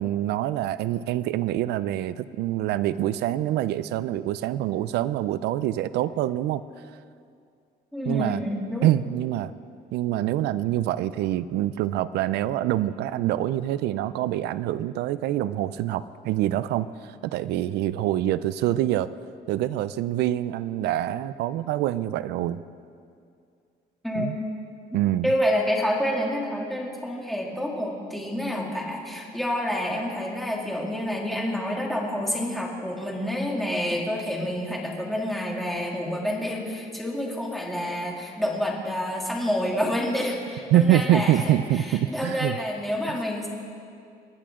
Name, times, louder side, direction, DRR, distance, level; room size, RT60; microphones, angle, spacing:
voice 1, 0.0-6.6 8.0-8.4 8.8-9.5 9.9-19.1 19.5-22.6 24.2-24.4 24.9-25.3 40.7-42.6 43.1-43.2, right 13 dB, 80° right, 15 dB, 0.5 m, -25 dB
voice 2, 7.9-8.9 24.0-24.3 25.2-43.5, equal, ahead, -3 dB, 2.8 m, -28 dB
28.0 x 10.5 x 3.8 m, 2.3 s
cardioid pair, 110°, 17 cm